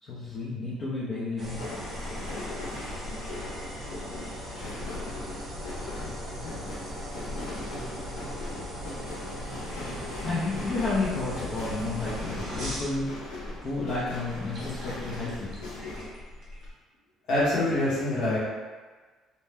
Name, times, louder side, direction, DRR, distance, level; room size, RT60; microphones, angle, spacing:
voice 1, 0.0-1.6 10.2-15.5, left 3 dB, 35° left, -9 dB, 0.5 m, -31 dB
sound 1, 1.4-16.7, equal, 30° right, 0.7 m, -38 dB
sound 2, 1.6-16.1, left 2 dB, 85° left, 0.8 m, -40 dB
voice 2, 17.3-18.4, left 1 dB, 60° left, -8 dB, 1.0 m, -25 dB
2.6 x 2.1 x 3.3 m, 1.4 s
cardioid pair, 175°, 0 cm